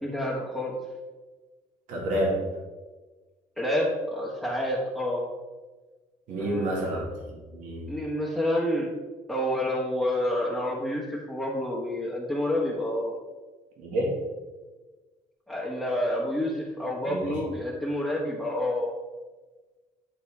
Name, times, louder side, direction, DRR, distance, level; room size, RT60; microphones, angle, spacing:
voice 1, 0.0-0.8 3.6-5.2 6.4-7.1 7.9-8.9 9.3-13.1 15.5-18.9, left 1 dB, ahead, -6 dB, 1.4 m, -28 dB
voice 2, 1.9-2.4 6.3-7.9 13.8-14.1 17.1-17.4, right 1 dB, 75° right, -2 dB, 2.1 m, -29 dB
10.5 x 4.1 x 3.5 m, 1.3 s
cardioid pair, 110°, 13 cm